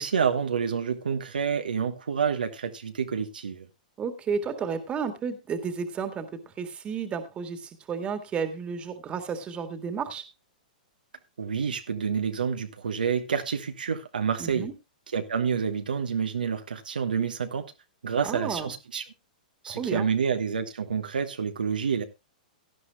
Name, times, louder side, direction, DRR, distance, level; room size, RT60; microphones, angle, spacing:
voice 1, 0.0-3.7 11.4-14.7 15.1-17.6 18.0-19.0 19.6-22.0, right 6 dB, 85° right, 1.3 m, -28 dB
voice 2, 4.0-6.3 6.6-10.2 14.4-14.7 18.2-18.7 19.7-20.1, right 6 dB, 25° right, 1.9 m, -32 dB
17.5 x 11.0 x 2.3 m
hypercardioid pair, 120°, 5 cm